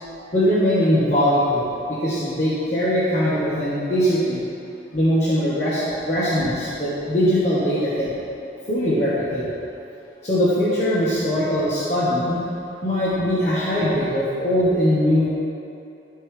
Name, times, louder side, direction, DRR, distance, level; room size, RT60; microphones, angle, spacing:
voice 1, 0.3-4.4 4.9-8.1 8.7-9.5 10.2-12.4 12.8-15.3, equal, 40° left, -11 dB, 1.3 m, -21 dB
12.0 x 4.7 x 3.2 m, 2.8 s
head